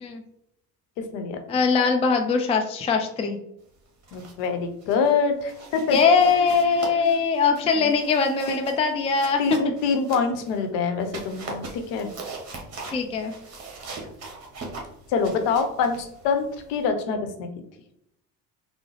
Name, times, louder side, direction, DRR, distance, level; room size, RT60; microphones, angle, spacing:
voice 1, 1.0-1.4 4.1-6.0 6.7-7.2 7.7-7.9 8.5-8.6 9.4-12.1 15.1-17.5, left 5 dB, 60° left, 6 dB, 0.8 m, -25 dB
voice 2, 1.5-3.4 5.9-9.4 12.9-13.3, left 5 dB, 15° left, 4 dB, 0.4 m, -21 dB
sound 1, 3.9-4.5 4.8-5.1 5.5-10.6 11.0-16.9, right 3 dB, 30° right, 1.1 m, -40 dB
3.7 x 2.0 x 3.1 m, 0.77 s
hypercardioid pair, 60°, 48 cm